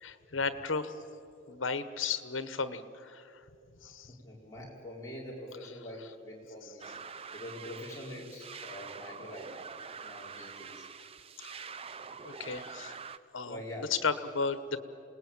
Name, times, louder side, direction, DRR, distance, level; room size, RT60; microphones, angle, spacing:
voice 1, 0.0-0.9 1.5-3.3 3.8-4.1 11.4-11.6 12.2-13.0 13.3-13.6 13.9-14.8, left 5 dB, 85° left, 12 dB, 1.3 m, -34 dB
voice 2, 4.1-6.9 7.3-9.5 10.0-10.9 13.4-13.9, left 1 dB, 15° left, -4 dB, 4.9 m, -44 dB
sound 1, 6.8-13.2, right 5 dB, 30° right, 0.6 m, -45 dB
28.0 x 19.5 x 9.1 m, 2.7 s
head